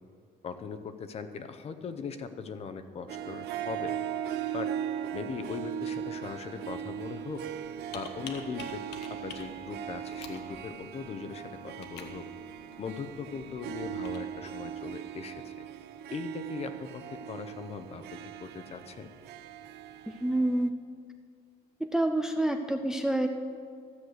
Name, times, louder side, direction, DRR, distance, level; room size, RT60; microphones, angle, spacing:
voice 1, 0.4-4.0 4.5-4.7 5.1-7.5 7.9-8.8 9.1-12.3 12.8-15.7 16.1-19.1, left 5 dB, 35° left, 10 dB, 0.7 m, -39 dB
Harp, 3.1-20.7, right 10 dB, 75° right, 0.6 m, -39 dB
Computer keyboard, 7.3-14.2, left 5 dB, 80° left, 1.2 m, -49 dB
voice 2, 20.1-20.7 21.8-23.3, right 1 dB, 5° right, 6 dB, 0.4 m, -27 dB
13.5 x 6.6 x 7.8 m, 2.3 s
cardioid pair, 160°, 17 cm